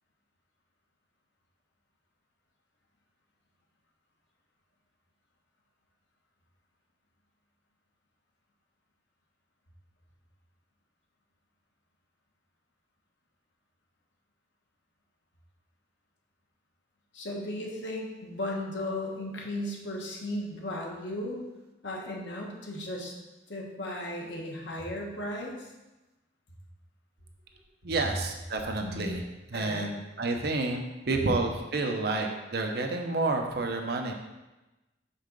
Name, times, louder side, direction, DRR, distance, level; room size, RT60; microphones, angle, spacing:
voice 1, 17.1-21.4 21.8-23.1 23.5-25.7 28.8-29.2 29.5-29.9, left 1 dB, 70° left, -1 dB, 1.2 m, -36 dB
voice 2, 27.8-29.2 29.5-34.1, right 3 dB, 55° right, 3 dB, 0.7 m, -30 dB
5.6 x 3.7 x 5.2 m, 1.1 s
head